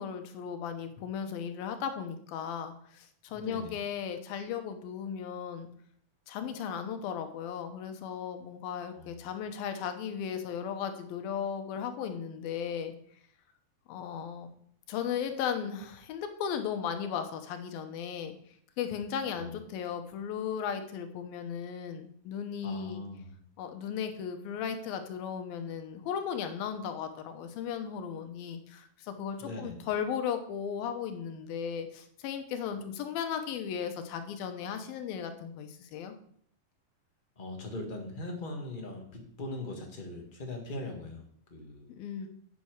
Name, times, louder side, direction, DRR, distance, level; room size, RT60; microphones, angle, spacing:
voice 1, 0.0-5.7 6.3-12.9 13.9-14.5 14.9-18.3 18.8-23.0 23.6-36.1 42.0-42.3, left 7 dB, 85° left, 7 dB, 2.9 m, -36 dB
voice 2, 3.3-3.7 8.9-9.2 19.3-19.6 22.6-23.4 29.4-29.9 37.4-41.2 41.5-41.9, left 2 dB, 40° left, 1 dB, 0.7 m, -40 dB
8.2 x 7.0 x 6.4 m, 0.64 s
omnidirectional pair, 4.1 m